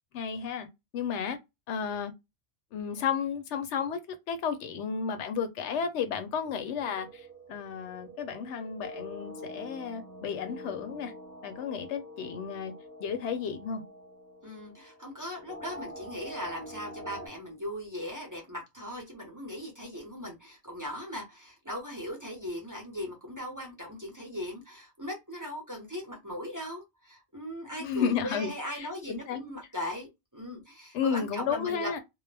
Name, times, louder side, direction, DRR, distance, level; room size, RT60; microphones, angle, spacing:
voice 1, 0.1-0.7 0.9-1.4 1.7-2.1 2.7-11.1 11.4-12.7 13.0-13.8 27.8-28.5 28.8-29.4 30.9-32.0, left 7 dB, 85° left, 0.9 m, -33 dB
sound 1, 6.4-17.3, equal, 10° left, 0.9 m, -46 dB
voice 2, 14.4-32.0, left 1 dB, 20° right, 0.6 m, -39 dB
2.3 x 2.0 x 3.2 m
omnidirectional pair, 1.1 m